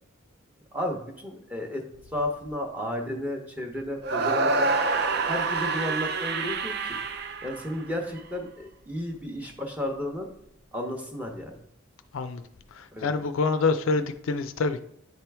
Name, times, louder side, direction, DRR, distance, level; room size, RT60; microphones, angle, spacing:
voice 1, 0.7-1.8 2.1-4.7 5.3-7.0 7.4-10.3 10.7-11.6 12.9-13.1, left 1 dB, 5° right, 0.8 m, -33 dB
sound 1, 4.0-8.2, right 3 dB, 50° right, 0.5 m, -27 dB
voice 2, 12.7-14.8, left 4 dB, 75° left, 0.4 m, -26 dB
9.2 x 4.4 x 3.4 m
head